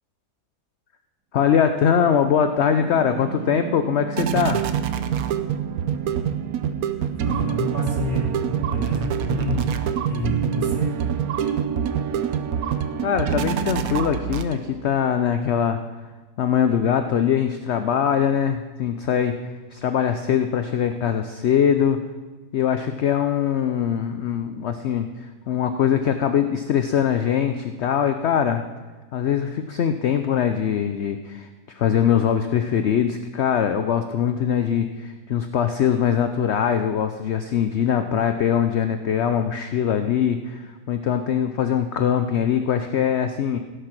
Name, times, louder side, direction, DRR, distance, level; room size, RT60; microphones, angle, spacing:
voice 1, 1.3-4.6 13.0-15.8 16.4-19.3 19.7-22.0 22.5-28.6 29.1-43.6, left 8 dB, 65° left, 8 dB, 0.7 m, -22 dB
sound 1, 2.3-14.9, right 8 dB, 70° right, 1.1 m, -26 dB
voice 2, 6.9-10.9, left 1 dB, 30° right, -3 dB, 3.0 m, -29 dB
16.5 x 6.7 x 5.9 m, 1.3 s
omnidirectional pair, 1.7 m